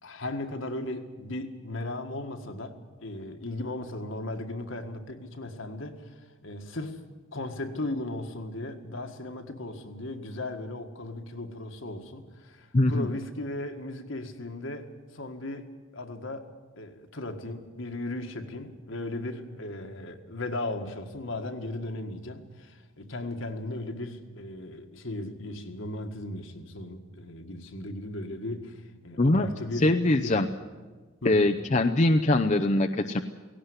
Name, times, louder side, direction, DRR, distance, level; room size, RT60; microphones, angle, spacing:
voice 1, 0.0-6.1 6.4-7.0 7.3-16.5 16.8-30.0 30.2-30.4 31.2-31.5, left 2 dB, 65° left, 6 dB, 1.8 m, -36 dB
voice 2, 12.7-13.1 29.2-29.5 29.8-30.5 31.2-33.2, left 2 dB, 35° left, 5 dB, 0.7 m, -22 dB
17.5 x 17.0 x 9.7 m, 1.4 s
head